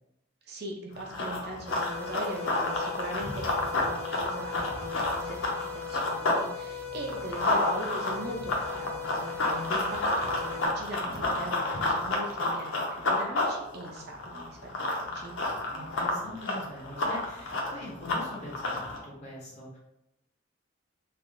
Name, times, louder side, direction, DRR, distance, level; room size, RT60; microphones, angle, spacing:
voice 1, 0.5-15.3, right 1 dB, 55° right, 0 dB, 0.6 m, -40 dB
Run, 1.0-6.4 6.8-19.0, left 2 dB, 85° left, 0.7 m, -30 dB
sound 1, 1.7-10.7, left 7 dB, 10° left, 0.5 m, -39 dB
voice 2, 15.7-19.8, left 1 dB, 40° left, -5 dB, 1.3 m, -42 dB
3.3 x 2.0 x 3.7 m, 0.84 s
head